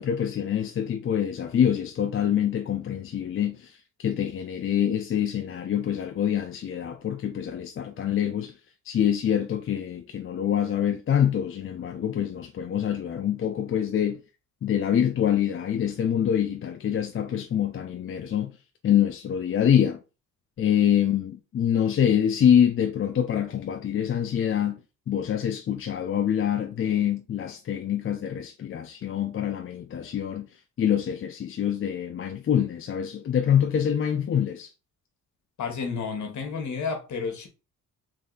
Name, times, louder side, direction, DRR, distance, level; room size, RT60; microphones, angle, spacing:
voice 1, 0.0-8.5 8.9-14.2 14.6-18.5 18.8-20.0 20.6-24.8 25.1-30.5 30.8-34.7, left 9 dB, 40° left, 0.5 m, -25 dB
voice 2, 35.6-37.5, left 5 dB, 55° left, 1.2 m, -31 dB
3.3 x 2.7 x 3.8 m
cardioid pair, 80°, 34 cm